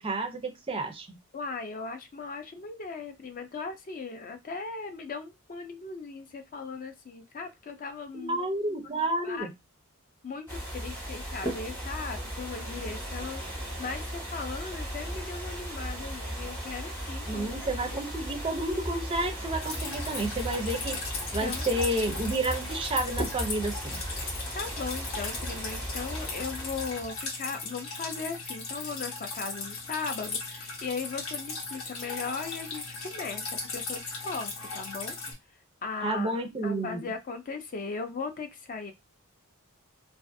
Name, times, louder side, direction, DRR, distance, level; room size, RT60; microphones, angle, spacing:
voice 1, 0.0-1.2 8.1-9.5 17.3-21.0 21.3-24.0 36.0-37.1, right 2 dB, 25° right, 5 dB, 0.4 m, -30 dB
voice 2, 1.3-8.5 9.2-9.5 10.2-17.7 21.4-21.8 24.5-33.4 33.7-35.2 35.8-38.9, left 4 dB, 40° left, 7 dB, 0.4 m, -38 dB
sound 1, 10.5-27.3, equal, 10° left, 0.8 m, -36 dB
Drip, 19.6-35.3, left 3 dB, 60° left, 0.8 m, -38 dB
2.4 x 2.3 x 2.5 m, 0.21 s
head